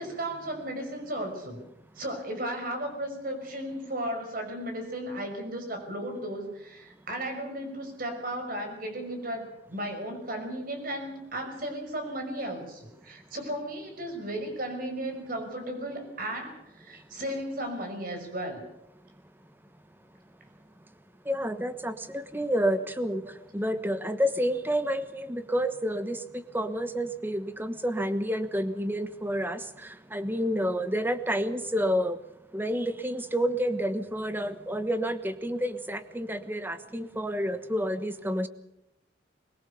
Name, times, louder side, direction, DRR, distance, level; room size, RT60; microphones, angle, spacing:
voice 1, 0.0-1.6 2.0-18.7, right 1 dB, 50° right, 5 dB, 5.8 m, -35 dB
voice 2, 21.3-23.2 23.5-32.2 32.5-38.5, equal, 10° right, 10 dB, 1.2 m, -29 dB
22.0 x 20.5 x 7.0 m, 0.82 s
head